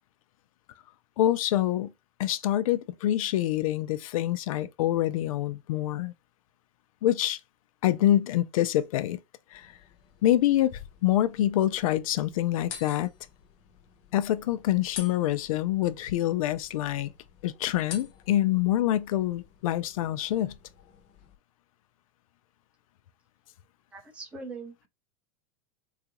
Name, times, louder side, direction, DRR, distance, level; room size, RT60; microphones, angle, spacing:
voice 1, 1.2-1.9 2.2-6.1 7.0-7.4 7.8-9.2 9.5-9.7 10.2-13.1 14.1-17.1 17.4-20.6, left 13 dB, 90° left, 0.4 m, -26 dB
sound 1, 9.5-21.4, left 8 dB, 40° left, 0.6 m, -49 dB
voice 2, 23.9-24.9, right 4 dB, 5° right, 0.5 m, -41 dB
3.8 x 2.4 x 2.8 m
supercardioid pair, 170°, 17 cm